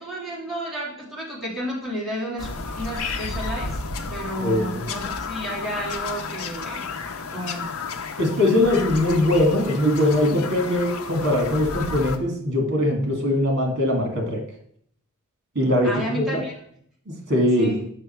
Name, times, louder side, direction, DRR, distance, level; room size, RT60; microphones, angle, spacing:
voice 1, 0.0-2.5 2.8-3.8 4.1-6.9 7.3-7.7 15.8-16.5 17.5-17.8, equal, ahead, -7 dB, 2.7 m, -31 dB
Bird vocalization bird call bird song, 2.4-12.2, left 4 dB, 85° left, 0.7 m, -32 dB
voice 2, 4.4-4.8 8.2-14.4 15.6-16.4 17.3-17.7, left 1 dB, 55° right, 2 dB, 2.2 m, -21 dB
6.7 x 5.7 x 4.4 m, 0.64 s
head